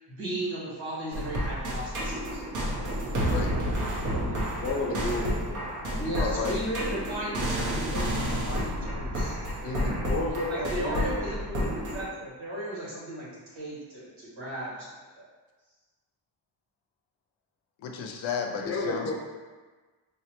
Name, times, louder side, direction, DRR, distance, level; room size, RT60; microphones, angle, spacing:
voice 1, 0.1-2.4 5.9-10.0 10.5-14.9 15.2-15.3, right 1 dB, 85° right, -7 dB, 1.4 m, -35 dB
sound 1, 1.1-12.1, equal, 45° right, 0.8 m, -30 dB
voice 2, 3.3-3.6 6.2-6.6 7.6-7.8 9.6-10.0 17.8-19.1, left 6 dB, 90° left, 2 dB, 0.6 m, -33 dB
voice 3, 4.1-5.8 10.0-11.2 18.6-19.1, left 2 dB, 30° left, -3 dB, 0.8 m, -32 dB
3.9 x 2.1 x 2.8 m, 1.3 s
cardioid pair, 105°, 45 cm